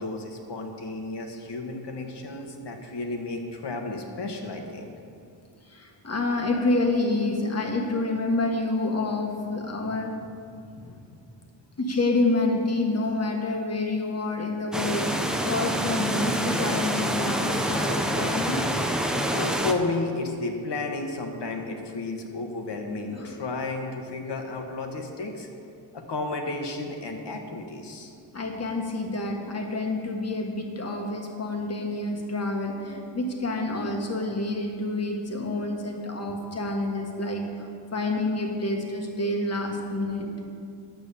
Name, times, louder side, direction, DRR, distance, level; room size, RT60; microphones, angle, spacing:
voice 1, 0.0-4.9 19.3-25.5 25.9-28.1, left 3 dB, 60° left, 3 dB, 1.4 m, -32 dB
voice 2, 5.7-10.1 10.7-11.0 11.8-18.7 23.1-23.4 28.3-40.3, left 2 dB, 30° left, 2 dB, 1.4 m, -28 dB
sound 1, 14.7-19.7, equal, ahead, 0.6 m, -26 dB
10.5 x 8.2 x 6.9 m, 2.5 s
wide cardioid pair, 170°, 47 cm